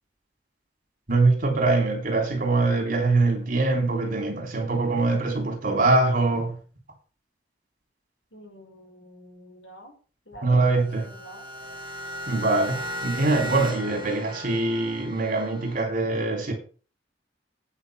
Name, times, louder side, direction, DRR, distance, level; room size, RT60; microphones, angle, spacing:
voice 1, 1.1-6.6 10.4-11.1 12.3-16.5, right 3 dB, 50° right, 3.4 m, -23 dB
voice 2, 8.3-9.9 10.3-11.5, right 1 dB, 90° left, 5.6 m, -46 dB
sound 1, 10.8-15.8, equal, 25° right, 3.1 m, -36 dB
8.9 x 7.5 x 6.6 m
head